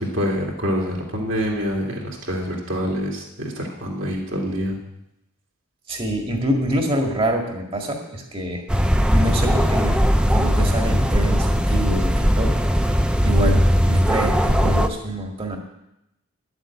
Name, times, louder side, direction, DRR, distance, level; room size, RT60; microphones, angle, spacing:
voice 1, 0.0-4.8, equal, 55° right, -1 dB, 2.7 m, -26 dB
voice 2, 5.9-8.6 9.1-10.0 10.3-12.6 13.2-15.6, right 1 dB, 25° right, 2 dB, 1.9 m, -26 dB
sound 1, 8.7-14.9, equal, 5° right, 0.5 m, -19 dB
11.0 x 7.8 x 8.6 m, 0.87 s
head